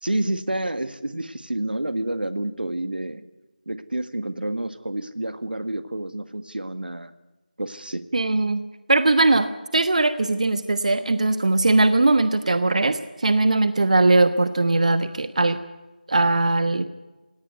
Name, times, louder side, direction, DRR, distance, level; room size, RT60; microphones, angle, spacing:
voice 1, 0.0-3.2 3.7-7.1 7.6-8.0, right 1 dB, 85° right, 12 dB, 1.8 m, -29 dB
voice 2, 8.1-8.6 8.9-15.6 16.1-16.9, right 2 dB, 50° right, 11 dB, 1.2 m, -20 dB
18.0 x 17.5 x 9.4 m, 1.1 s
figure-of-eight pair, 170°, 5 cm